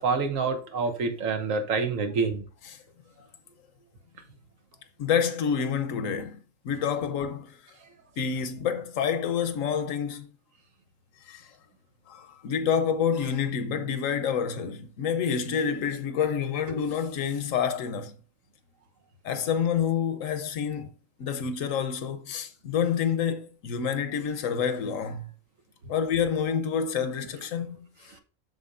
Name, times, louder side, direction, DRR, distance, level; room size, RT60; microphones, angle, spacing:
voice 1, 0.0-2.4, right 4 dB, 75° right, 1.4 m, -27 dB
voice 2, 5.0-7.6 8.2-10.3 11.2-11.5 12.1-18.1 19.2-20.9 21.2-25.3 25.9-27.7, left 7 dB, 70° left, 1.1 m, -28 dB
7.7 x 6.3 x 2.5 m
omnidirectional pair, 1.4 m